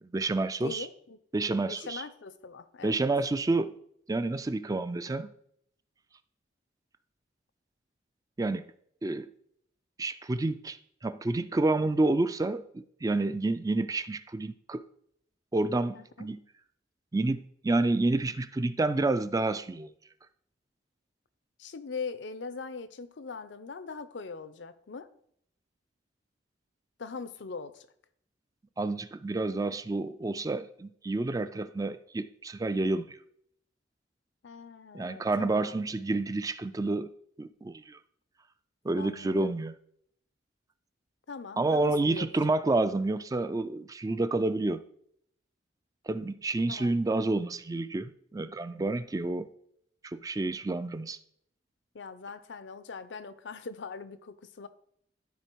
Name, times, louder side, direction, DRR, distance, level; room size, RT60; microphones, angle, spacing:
voice 1, 0.0-0.9 1.3-2.0 2.8-3.7 4.1-5.3 8.4-8.7 9.0-9.3 10.0-10.8 11.0-14.9 15.5-16.4 17.1-19.9 28.8-33.2 34.9-37.1 37.4-38.0 38.8-39.7 41.6-44.8 46.1-49.5 50.0-51.2, right 2 dB, 20° right, 12 dB, 0.3 m, -29 dB
voice 2, 0.6-1.2 1.7-3.0 15.9-16.3 21.6-25.1 27.0-27.9 34.4-35.7 39.0-39.5 41.3-42.3 46.7-46.9 51.9-54.7, left 4 dB, 70° left, 13 dB, 0.6 m, -41 dB
12.0 x 4.2 x 4.6 m, 0.68 s
head